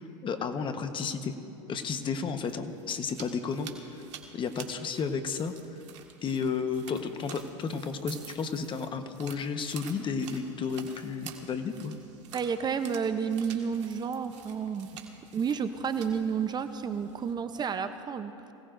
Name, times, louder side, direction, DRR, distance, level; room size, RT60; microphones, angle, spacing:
voice 1, 0.2-1.3 1.7-4.0 4.3-5.8 6.2-11.9, left 5 dB, 30° left, 8 dB, 1.1 m, -32 dB
sound 1, 2.1-17.3, right 8 dB, 75° right, 1.8 m, -49 dB
voice 2, 12.3-14.9 15.3-18.3, right 6 dB, 25° right, 9 dB, 0.7 m, -31 dB
24.5 x 17.0 x 2.6 m, 2.7 s
hypercardioid pair, 100°, 16 cm